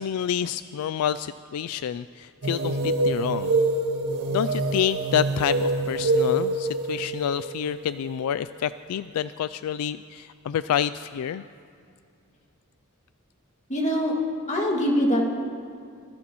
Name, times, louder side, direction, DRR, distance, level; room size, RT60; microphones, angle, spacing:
voice 1, 0.0-3.6 4.3-11.4, left 9 dB, 75° left, 14 dB, 0.3 m, -28 dB
sound 1, 2.4-8.8, right 2 dB, 75° right, 1.6 m, -26 dB
voice 2, 13.7-14.1 14.5-15.4, equal, 35° left, -1 dB, 2.1 m, -23 dB
24.5 x 16.5 x 3.0 m, 2.3 s
head